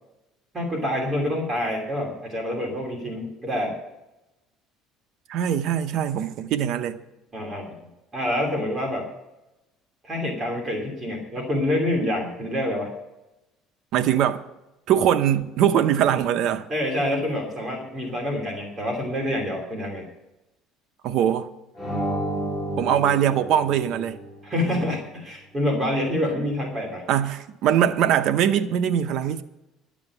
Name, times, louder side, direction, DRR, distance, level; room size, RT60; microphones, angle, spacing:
voice 1, 0.5-3.8 7.3-7.7 8.1-9.1 10.0-12.9 16.7-20.1 24.4-27.1, left 1 dB, 25° right, 2.9 m, -27 dB
voice 2, 5.3-7.0 13.9-14.4 14.9-16.7 21.0-21.5 22.8-24.2 27.1-29.4, right 10 dB, 60° right, 0.8 m, -22 dB
sound 1, 21.8-24.5, right 1 dB, ahead, 2.2 m, -30 dB
12.0 x 7.3 x 8.5 m
cardioid pair, 135°, 0 cm